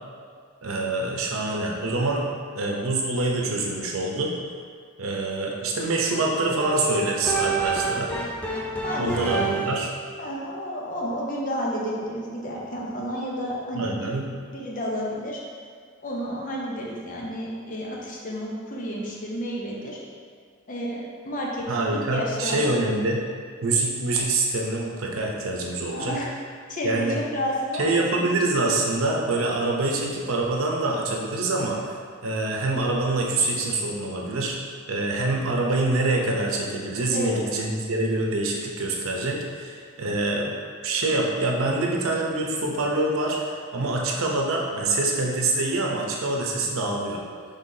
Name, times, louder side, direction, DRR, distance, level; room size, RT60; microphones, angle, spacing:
voice 1, 0.6-2.3 2.5-4.3 5.0-8.1 9.0-9.9 13.7-14.3 21.7-23.2 23.6-26.2 26.8-27.2 27.7-34.6 34.9-40.5 40.8-47.2, right 2 dB, 85° right, -1 dB, 0.7 m, -25 dB
sound 1, 6.6-10.0, right 4 dB, 5° left, 0.3 m, -28 dB
voice 2, 8.8-9.3 10.2-14.2 14.5-15.4 16.0-20.0 20.7-22.9 25.9-26.3 26.7-28.2 37.1-37.4, equal, 40° left, -3 dB, 0.8 m, -31 dB
5.6 x 3.4 x 2.7 m, 2.1 s
head